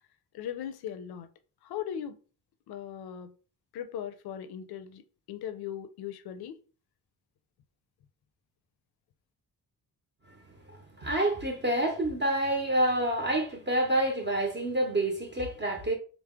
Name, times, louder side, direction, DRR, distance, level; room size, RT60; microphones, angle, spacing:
voice 1, 0.3-1.3 1.6-2.2 2.7-3.3 3.7-6.6, left 9 dB, 80° left, 0.5 m, -38 dB
voice 2, 10.7-16.0, right 1 dB, 30° right, 0.6 m, -28 dB
4.5 x 2.0 x 3.5 m
wide cardioid pair, 150°, 37 cm